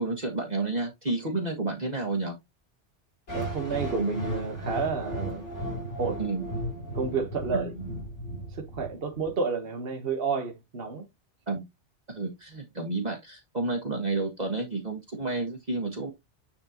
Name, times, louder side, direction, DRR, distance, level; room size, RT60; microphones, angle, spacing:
voice 1, 0.0-2.3 6.2-6.4 7.5-7.7 11.5-11.6 12.1-16.1, right 3 dB, 35° right, 1.6 m, -30 dB
sound 1, 3.3-9.3, right 1 dB, 75° left, 3.9 m, -35 dB
voice 2, 3.3-5.4 6.0-6.2 6.9-7.7 8.5-11.0, right 5 dB, 55° right, 1.4 m, -30 dB
9.8 x 4.3 x 2.9 m
omnidirectional pair, 1.2 m